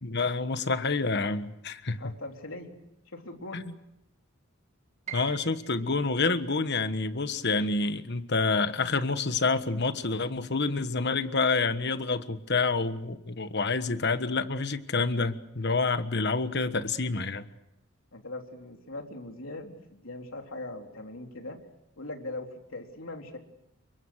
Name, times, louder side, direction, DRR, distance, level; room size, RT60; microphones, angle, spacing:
voice 1, 0.0-2.0 3.5-3.7 5.1-17.4, left 3 dB, 50° left, 10 dB, 1.4 m, -28 dB
voice 2, 2.0-2.8 3.1-3.7 18.1-21.6 22.0-23.4, left 2 dB, 65° left, 3 dB, 3.8 m, -40 dB
Piano, 5.1-11.0 11.3-12.5 12.9-13.0 13.7-14.0, right 9 dB, 30° right, 2.4 m, -49 dB
29.0 x 23.5 x 6.5 m, 0.85 s
head